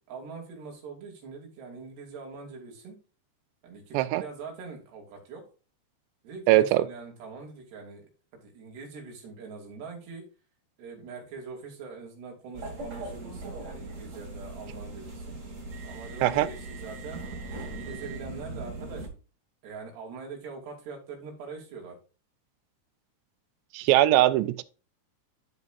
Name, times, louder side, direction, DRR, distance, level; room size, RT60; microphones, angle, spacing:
voice 1, 0.1-3.0 3.6-5.4 6.2-8.1 8.3-10.2 10.8-15.4 15.8-17.2 17.6-19.1 19.6-22.0 23.9-24.2, right 4 dB, 70° right, 4.5 m, -43 dB
voice 2, 6.5-6.9 16.2-16.5 23.7-24.6, right 14 dB, 85° right, 2.8 m, -21 dB
sound 1, 12.5-19.1, right 2 dB, 55° right, 0.8 m, -39 dB
12.5 x 5.3 x 2.5 m
omnidirectional pair, 5.0 m